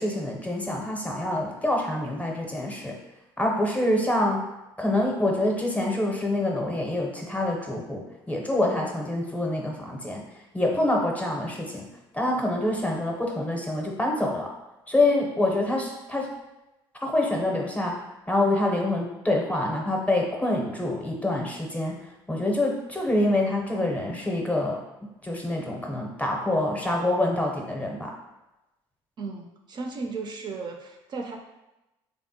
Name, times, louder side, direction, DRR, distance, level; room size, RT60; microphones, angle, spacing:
voice 1, 0.0-3.0 3.4-4.4 4.8-10.2 10.5-11.8 12.1-14.5 14.9-16.3 17.0-18.0 18.3-22.0 22.3-24.8 25.2-28.1, left 1 dB, 15° left, 0 dB, 0.6 m, -26 dB
voice 2, 29.2-31.4, right 4 dB, 45° right, 2 dB, 0.4 m, -35 dB
3.3 x 2.1 x 2.7 m, 0.98 s
supercardioid pair, 85°, 11 cm